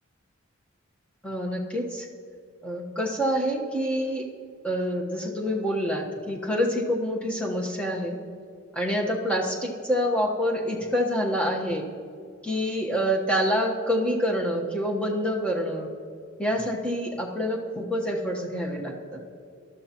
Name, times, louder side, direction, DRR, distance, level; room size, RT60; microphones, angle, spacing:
voice 1, 1.2-2.1 2.6-4.2 4.6-8.2 8.7-11.9 12.4-15.9 16.4-19.2, equal, 5° left, -1 dB, 1.2 m, -27 dB
19.0 x 13.0 x 3.0 m, 2.3 s
head